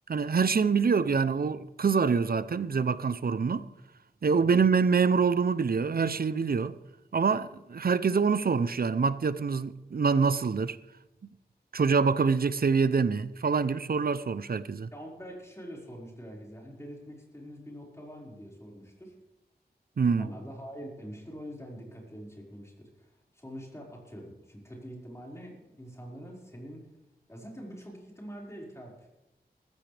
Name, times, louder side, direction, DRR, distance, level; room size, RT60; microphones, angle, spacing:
voice 1, 0.1-3.7 4.2-6.7 7.1-10.8 11.2-11.3 11.7-14.9 20.0-20.3, right 5 dB, 65° right, 0.6 m, -25 dB
voice 2, 14.9-19.1 20.2-26.9 27.3-29.1, equal, 15° left, 5.1 m, -45 dB
19.0 x 15.0 x 3.4 m
wide cardioid pair, 85°, 17 cm